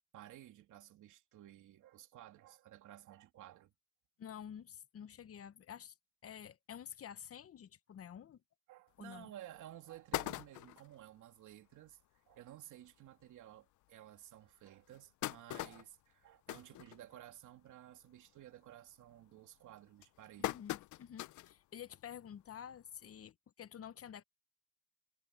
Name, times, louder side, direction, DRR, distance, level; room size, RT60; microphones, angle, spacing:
voice 1, 0.1-3.7 8.7-12.0 12.3-20.5, right 13 dB, 80° right, 2.9 m, -55 dB
voice 2, 4.2-5.9 6.2-8.4 9.0-9.3 20.4-24.2, left 9 dB, 50° left, 1.0 m, -50 dB
sound 1, 9.0-9.1 9.6-9.7 9.9-11.0 11.5-11.6 11.9-12.0 12.3-12.5 13.2-13.3 13.8-13.9 14.7-17.5 17.9-18.2 18.5-18.9 19.6-21.6 22.0-22.1 23.3-23.4, left 17 dB, 75° left, 0.5 m, -42 dB
cardioid pair, 90°, 30 cm